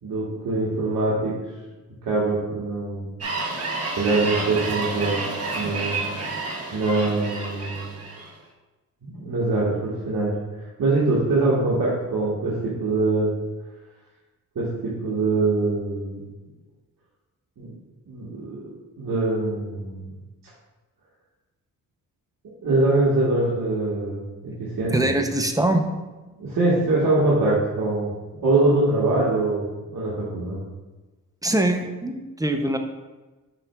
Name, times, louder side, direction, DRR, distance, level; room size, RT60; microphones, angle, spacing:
voice 1, 0.0-1.3 2.0-3.1 4.0-5.2 5.5-6.0 6.7-7.9 9.0-10.3 10.8-13.3 14.5-16.2 17.6-17.7 18.1-18.7 19.0-20.1 22.6-24.9 26.4-28.1 28.4-30.6, right 2 dB, 65° right, -8 dB, 1.7 m, -23 dB
sound 1, 3.2-8.3, right 3 dB, 40° right, 1.2 m, -30 dB
voice 2, 24.9-25.8 31.4-32.8, right 1 dB, 10° right, 5 dB, 0.6 m, -23 dB
7.3 x 5.6 x 2.3 m, 1.2 s
cardioid pair, 85°, 36 cm